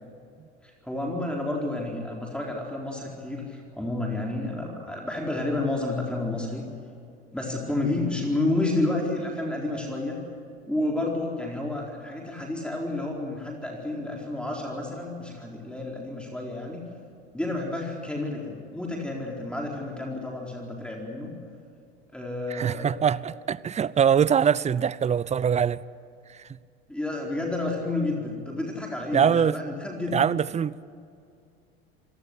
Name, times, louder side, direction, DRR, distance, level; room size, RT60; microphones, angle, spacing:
voice 1, 0.6-6.7 7.3-10.2 10.7-16.8 17.3-21.3 22.1-22.9 26.9-30.2, left 2 dB, 5° left, 4.4 m, -30 dB
voice 2, 22.5-25.8 29.1-29.5 30.1-30.8, right 8 dB, 20° right, 0.7 m, -23 dB
26.5 x 17.5 x 8.2 m
hypercardioid pair, 80°, 31 cm